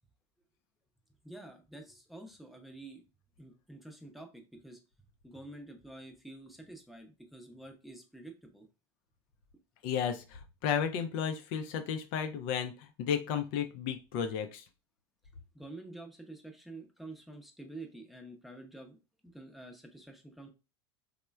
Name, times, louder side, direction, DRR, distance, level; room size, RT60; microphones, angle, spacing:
voice 1, 1.2-3.0 3.4-4.8 5.2-8.7 15.5-19.0 19.2-20.5, right 2 dB, ahead, 2 dB, 0.6 m, -48 dB
voice 2, 9.8-14.6, left 8 dB, 65° left, 7 dB, 0.4 m, -33 dB
3.1 x 2.1 x 2.2 m, 0.29 s
hypercardioid pair, 85°, 14 cm